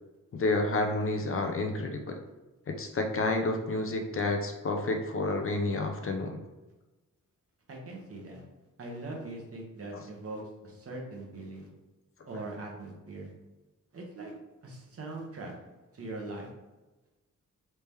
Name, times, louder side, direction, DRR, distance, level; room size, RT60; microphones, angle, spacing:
voice 1, 0.3-2.1 2.7-6.4, left 2 dB, 45° left, 4 dB, 0.4 m, -30 dB
voice 2, 7.7-8.4 8.8-11.7 12.3-13.3 13.9-14.3 14.6-15.5 15.9-16.5, right 2 dB, 50° right, -1 dB, 0.9 m, -41 dB
3.3 x 2.8 x 3.4 m, 1.1 s
wide cardioid pair, 120°, 31 cm